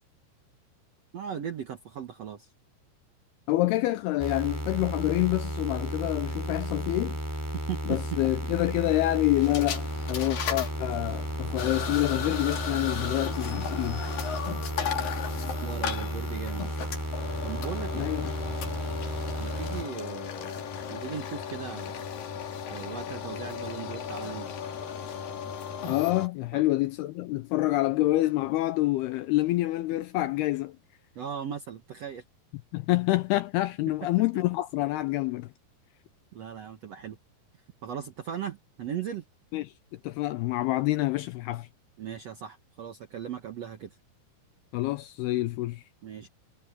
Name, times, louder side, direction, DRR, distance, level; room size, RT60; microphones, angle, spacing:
voice 1, 1.1-2.5 7.5-8.2 15.6-16.9 17.4-18.1 19.4-22.1 22.7-24.5 26.5-26.6 31.1-32.2 36.3-37.2 37.8-39.2 42.0-44.0 46.0-46.3, right 8 dB, 75° right, 1.5 m, -38 dB
voice 2, 3.5-7.2 7.9-14.0 18.0-18.3 25.9-30.8 32.7-35.5 39.5-39.7 40.0-41.7 44.7-45.8, left 17 dB, 85° left, 2.4 m, -27 dB
sound 1, 4.2-19.8, equal, 5° right, 2.6 m, -33 dB
sound 2, 9.4-26.3, left 7 dB, 55° left, 4.0 m, -36 dB
omnidirectional pair, 5.1 m